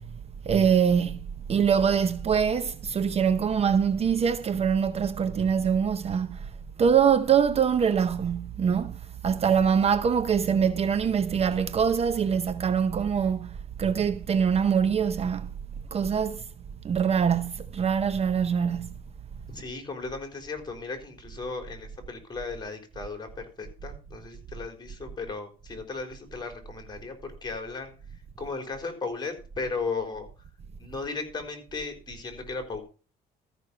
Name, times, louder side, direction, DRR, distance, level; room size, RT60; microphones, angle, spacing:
voice 1, 0.4-6.5 6.8-15.5 15.9-16.4 16.8-18.9, right 7 dB, 40° right, 0.8 m, -24 dB
voice 2, 19.5-27.1 27.4-27.9 28.4-30.3 30.8-32.8, left 4 dB, 25° left, 4.0 m, -36 dB
13.5 x 6.1 x 6.7 m
cardioid pair, 110°, 17 cm